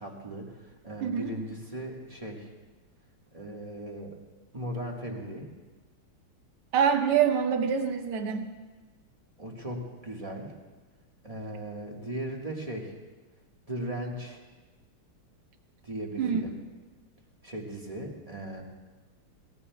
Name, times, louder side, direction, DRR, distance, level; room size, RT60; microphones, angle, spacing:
voice 1, 0.0-2.5 3.3-4.2 4.5-5.5 9.4-10.5 11.2-12.9 13.7-14.4 15.8-16.5 17.4-18.6, right 1 dB, 20° right, -1 dB, 1.4 m, -37 dB
voice 2, 1.0-1.3 6.7-8.5 16.2-16.4, right 7 dB, 80° right, 5 dB, 1.9 m, -25 dB
23.5 x 18.0 x 2.3 m, 1.3 s
omnidirectional pair, 2.4 m